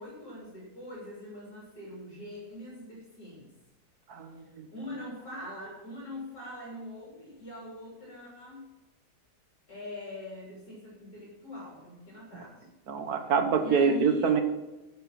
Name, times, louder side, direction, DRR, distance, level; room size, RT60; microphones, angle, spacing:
voice 1, 0.0-3.5 4.4-8.7 9.7-12.7 13.5-14.3, left 1 dB, 60° left, -5 dB, 3.8 m, -42 dB
voice 2, 4.1-4.7 12.9-14.4, right 6 dB, 60° right, 7 dB, 1.6 m, -26 dB
13.0 x 6.3 x 5.9 m, 1.1 s
omnidirectional pair, 1.9 m